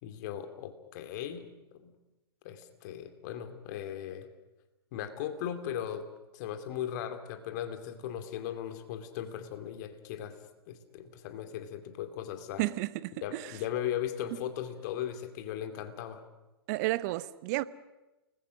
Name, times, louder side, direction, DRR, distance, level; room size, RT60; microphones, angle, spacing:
voice 1, 0.0-1.5 1.7-1.9 2.4-4.3 4.9-6.1 6.3-10.4 10.7-12.6 13.2-16.2, left 10 dB, 45° left, 2.6 m, -38 dB
voice 2, 12.6-13.5 16.7-17.6, right 19 dB, 40° right, 0.9 m, -32 dB
29.5 x 20.5 x 6.3 m
figure-of-eight pair, 110°, 13 cm